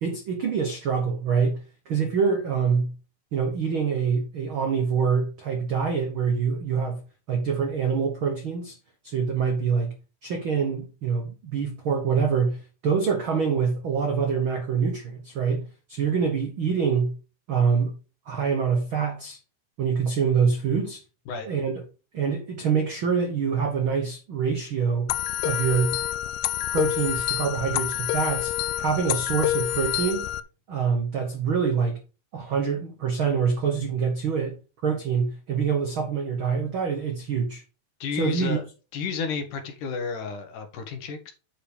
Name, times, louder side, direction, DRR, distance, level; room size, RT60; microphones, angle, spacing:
voice 1, 0.0-2.9 3.3-7.0 7.3-8.8 9.0-9.9 10.2-17.1 17.5-17.9 18.3-19.4 19.8-21.0 21.4-21.8 22.1-25.1 25.4-26.0 26.7-30.3 30.7-32.0 32.3-34.5 34.8-37.6 38.1-38.6, right 6 dB, 80° right, 1.1 m, -25 dB
sound 1, 25.1-30.4, left 14 dB, 80° left, 2.2 m, -27 dB
voice 2, 38.0-38.6 38.9-41.3, left 5 dB, 65° left, 2.8 m, -31 dB
8.7 x 5.0 x 4.9 m
omnidirectional pair, 4.2 m